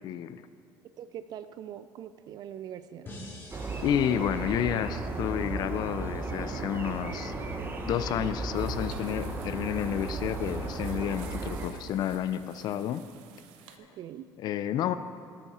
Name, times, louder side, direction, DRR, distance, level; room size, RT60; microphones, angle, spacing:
voice 1, 0.0-0.4 3.8-7.3 7.9-13.0 14.4-14.9, left 10 dB, 55° left, 13 dB, 0.4 m, -30 dB
voice 2, 1.0-3.1 13.8-14.3, right 10 dB, 55° right, 12 dB, 0.4 m, -42 dB
sound 1, 3.1-6.2, left 1 dB, 30° left, 2.7 m, -49 dB
sound 2, 3.5-11.7, right 3 dB, 25° right, 1.0 m, -35 dB
sound 3, 8.5-13.8, right 10 dB, 90° right, 0.7 m, -54 dB
12.0 x 9.0 x 4.2 m, 2.4 s
cardioid pair, 105°, 8 cm